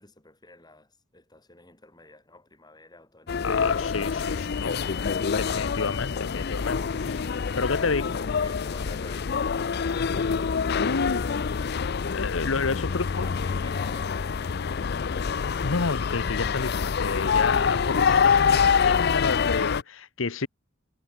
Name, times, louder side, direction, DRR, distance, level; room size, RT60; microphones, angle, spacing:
voice 1, 0.0-3.8 7.5-10.5 12.8-15.1 18.3-19.2, left 2 dB, 20° left, 7.9 m, -50 dB
sound 1, 3.3-19.8, left 6 dB, 55° left, 0.5 m, -26 dB
voice 2, 3.4-4.9 5.4-7.3 7.6-8.1 10.8-11.2 12.0-13.3 15.6-18.6 19.0-20.5, left 4 dB, 85° left, 1.0 m, -30 dB
head